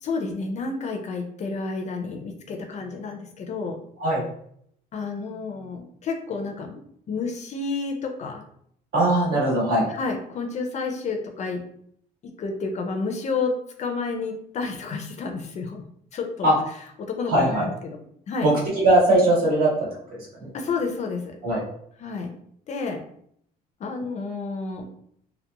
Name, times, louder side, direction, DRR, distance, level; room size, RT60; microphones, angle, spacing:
voice 1, 0.0-3.8 4.9-6.8 7.1-8.4 9.9-11.6 12.2-13.5 13.8-15.8 16.1-16.5 17.0-18.0 18.3-18.5 20.5-21.4 22.0-22.3 22.7-23.0 23.8-24.9, left 4 dB, 45° left, 4 dB, 0.4 m, -30 dB
voice 2, 8.9-9.8 16.4-16.5 17.3-17.6 18.4-20.5 21.4-21.6, right 1 dB, 60° right, -5 dB, 1.4 m, -20 dB
2.9 x 2.1 x 2.2 m, 0.68 s
cardioid pair, 110°, 17 cm